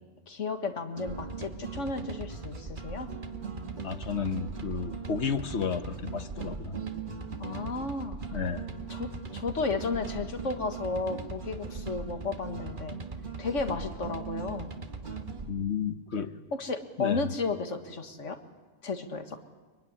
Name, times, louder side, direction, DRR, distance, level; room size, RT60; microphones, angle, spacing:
voice 1, 0.3-3.1 7.4-8.2 8.9-13.0 13.4-14.7 16.5-18.4 18.8-19.4, left 4 dB, 85° left, 7 dB, 2.1 m, -33 dB
sound 1, 1.0-15.5, right 4 dB, 45° right, 1.7 m, -39 dB
voice 2, 3.8-6.8 8.3-8.6 15.5-16.4 17.0-17.3, left 6 dB, 65° left, 10 dB, 1.4 m, -32 dB
24.5 x 22.5 x 9.9 m, 1.3 s
omnidirectional pair, 1.2 m